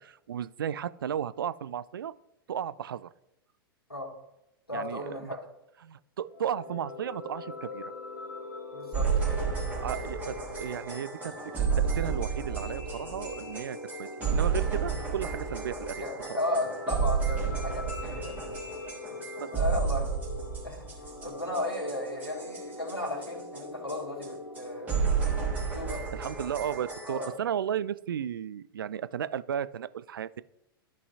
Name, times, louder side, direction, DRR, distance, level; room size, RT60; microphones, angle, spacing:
voice 1, 0.0-2.1 2.5-3.1 4.7-5.3 5.8-7.9 9.8-16.4 19.4-19.5 26.1-30.4, right 9 dB, 65° right, 17 dB, 0.4 m, -34 dB
voice 2, 4.7-5.4 8.7-9.5 14.9-15.1 16.0-18.4 19.5-20.1 20.6-20.8 21.2-25.1 25.7-26.0 27.0-27.4, left 1 dB, 85° left, -2 dB, 2.3 m, -35 dB
sound 1, 6.2-25.5, left 3 dB, 65° left, 2.5 m, -42 dB
sound 2, 8.9-23.6 23.9-24.0 24.2-24.3 24.5-24.6 24.9-27.3, right 6 dB, 10° right, 3.2 m, -32 dB
14.0 x 5.4 x 2.7 m, 0.89 s
figure-of-eight pair, 100°, 13 cm